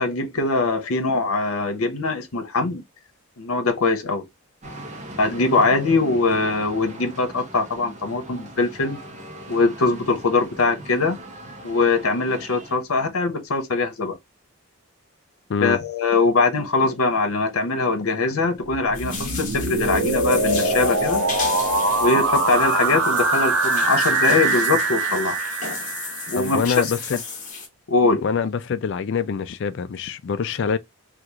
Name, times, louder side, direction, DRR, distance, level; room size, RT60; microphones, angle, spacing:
voice 1, 0.0-2.8 3.4-4.2 5.2-9.0 9.5-11.2 11.6-14.2 15.6-21.2 22.0-25.4 26.3-26.7 27.9-28.2, left 3 dB, 85° left, 0.8 m, -22 dB
sound 1, 4.6-12.7, right 1 dB, 35° right, 0.7 m, -40 dB
voice 2, 15.5-15.8 26.4-27.2 28.2-30.8, left 6 dB, 55° left, 0.3 m, -25 dB
sound 2, 18.7-26.6, right 3 dB, 85° right, 1.1 m, -23 dB
sound 3, 18.9-27.7, left 4 dB, 35° left, 1.1 m, -34 dB
3.0 x 2.4 x 3.4 m
head